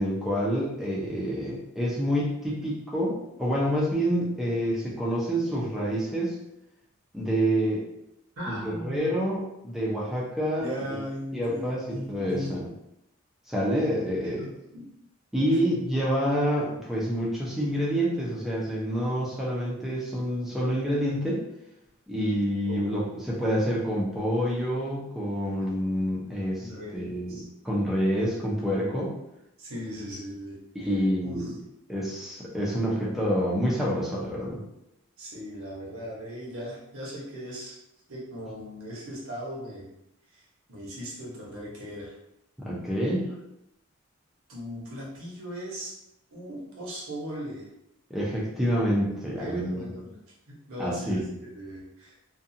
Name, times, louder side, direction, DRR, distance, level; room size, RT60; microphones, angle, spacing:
voice 1, 0.0-6.4 7.1-7.8 8.5-10.7 11.3-12.7 13.5-14.4 15.3-21.4 22.1-27.4 27.6-29.1 30.7-31.5 31.9-34.6 42.6-43.3 48.1-49.9 50.8-51.3, equal, ahead, -5 dB, 0.5 m, -27 dB
voice 2, 8.4-9.2 10.6-12.5 14.4-14.8 15.5-15.6 22.6-22.8 23.1-23.2 26.6-27.4 29.6-30.6 31.2-31.6 35.2-37.8 38.1-39.9 40.3-42.2 44.5-45.9 46.3-47.6 49.1-50.1 50.5-51.2 51.5-52.1, equal, 80° right, -4 dB, 1.0 m, -38 dB
2.5 x 2.3 x 2.7 m, 0.84 s
head